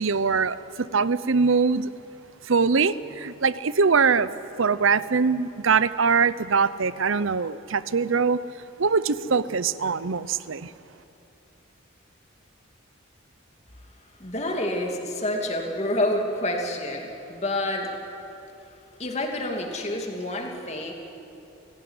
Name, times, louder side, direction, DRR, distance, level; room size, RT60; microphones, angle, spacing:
voice 1, 0.0-1.9 2.4-4.3 4.6-8.4 8.8-10.7, right 5 dB, 70° right, 16 dB, 0.7 m, -22 dB
voice 2, 14.2-17.9 19.0-20.9, left 1 dB, 30° left, 2 dB, 2.7 m, -28 dB
29.0 x 17.0 x 9.7 m, 2.8 s
head